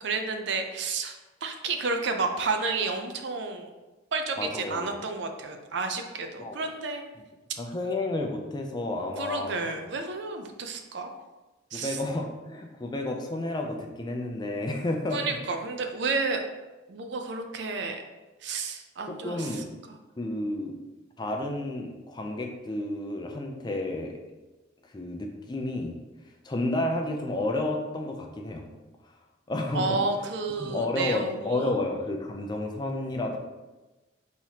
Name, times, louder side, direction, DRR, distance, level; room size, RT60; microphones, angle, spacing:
voice 1, 0.0-3.7 4.1-7.1 9.2-11.1 11.7-12.0 15.1-16.4 16.9-18.0 18.4-20.0 29.7-31.7, right 3 dB, 55° right, 5 dB, 0.5 m, -31 dB
voice 2, 4.4-4.9 6.4-6.6 7.6-9.6 11.7-15.2 19.1-19.7 20.2-20.8 21.2-24.1 24.9-26.0 26.4-28.7 29.5-30.0 30.6-33.4, left 2 dB, 20° left, 2 dB, 0.4 m, -31 dB
5.6 x 3.0 x 2.8 m, 1.1 s
head